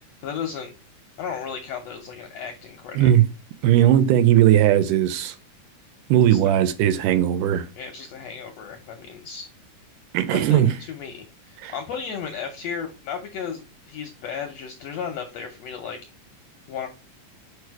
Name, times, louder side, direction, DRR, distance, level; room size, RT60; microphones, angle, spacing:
voice 1, 0.2-0.7 1.2-3.1 6.3-6.5 7.8-9.5 10.3-16.0 16.7-16.9, left 7 dB, 75° left, 1.5 m, -34 dB
voice 2, 3.6-5.4 6.1-7.7 10.1-10.7 11.6-11.7, right 11 dB, 80° right, 2.1 m, -18 dB
4.8 x 4.7 x 4.7 m
omnidirectional pair, 3.8 m